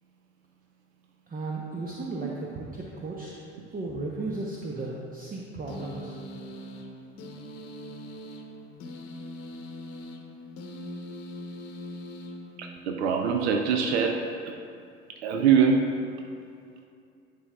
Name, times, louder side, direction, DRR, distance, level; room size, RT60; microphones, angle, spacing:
voice 1, 1.3-3.4 3.7-6.2, right 2 dB, 25° right, -3 dB, 0.8 m, -35 dB
sound 1, 5.7-13.1, left 1 dB, 50° left, 0.9 m, -41 dB
voice 2, 12.6-14.5 15.1-15.9, right 6 dB, 75° right, 3 dB, 0.6 m, -24 dB
11.0 x 5.1 x 2.3 m, 2.4 s
hypercardioid pair, 65°, 33 cm